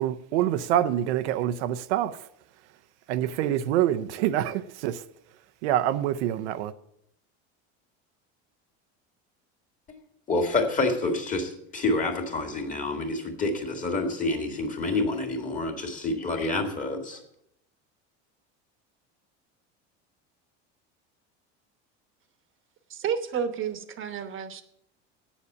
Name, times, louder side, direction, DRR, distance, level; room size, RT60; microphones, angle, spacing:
voice 1, 0.0-2.3 3.1-5.1 5.6-6.7, right 11 dB, 85° right, 0.7 m, -26 dB
voice 2, 10.3-17.2, left 2 dB, 25° left, 2.0 m, -28 dB
voice 3, 22.9-24.6, right 7 dB, 40° right, 1.1 m, -31 dB
8.4 x 7.2 x 8.2 m
supercardioid pair, 125°, 33 cm